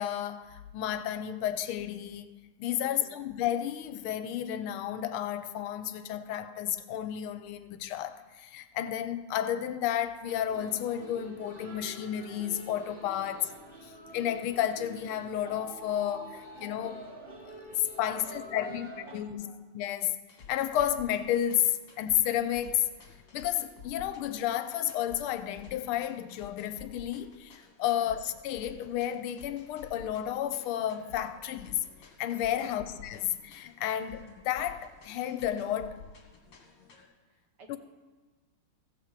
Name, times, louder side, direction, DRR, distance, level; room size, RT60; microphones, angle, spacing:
voice 1, 0.0-2.3 2.6-13.5 13.8-17.0 17.5-17.6 18.0-18.9 19.1-20.1 20.5-22.9 23.3-31.8 32.2-36.0 37.7-37.8, left 11 dB, 90° left, 1.5 m, -32 dB
voice 2, 2.8-3.2 13.1-13.5 17.7-19.6 27.9-28.1 32.5-32.9 37.3-37.8, right 2 dB, 85° right, 2.5 m, -53 dB
sound 1, 10.3-19.1, right 1 dB, 30° right, 1.3 m, -46 dB
sound 2, 20.3-37.0, left 5 dB, 60° left, 2.2 m, -52 dB
15.0 x 5.1 x 7.3 m
omnidirectional pair, 2.4 m